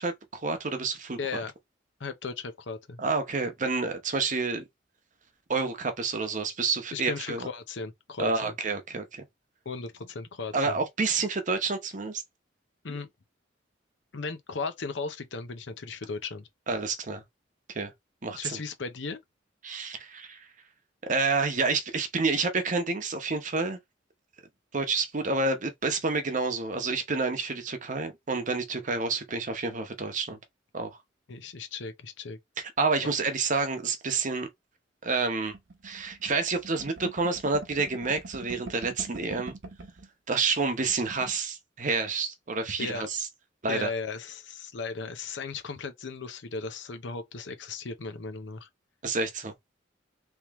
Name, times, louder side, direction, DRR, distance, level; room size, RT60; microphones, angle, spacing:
voice 1, 0.0-1.2 3.0-4.6 5.5-7.5 8.2-9.2 10.5-12.2 16.7-17.2 17.7-17.9 18.2-18.6 19.6-20.5 21.0-23.8 24.7-30.4 30.7-31.0 32.6-34.5 35.0-35.5 35.8-39.5 40.3-43.3 43.6-43.9 49.0-49.5, right 4 dB, 45° right, 0.8 m, -29 dB
voice 2, 1.2-1.5 2.0-3.0 6.9-8.5 9.6-10.8 12.8-13.1 14.1-16.5 18.3-19.2 31.3-32.4 42.8-43.1 43.7-48.7, left 4 dB, 70° left, 0.7 m, -36 dB
sound 1, 35.5-40.1 40.4-40.5 40.8-41.4, right 2 dB, 70° right, 1.0 m, -43 dB
3.5 x 3.0 x 2.9 m
head